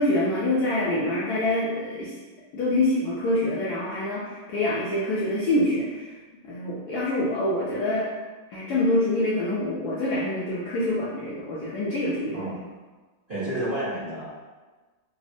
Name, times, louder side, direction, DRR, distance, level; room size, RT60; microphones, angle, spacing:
voice 1, 0.0-2.1 2.5-6.1 6.5-8.1 8.5-12.5, left 1 dB, 75° left, -7 dB, 0.9 m, -25 dB
voice 2, 13.3-14.3, right 1 dB, 45° right, -13 dB, 0.6 m, -30 dB
3.4 x 2.0 x 2.5 m, 1.3 s
omnidirectional pair, 2.1 m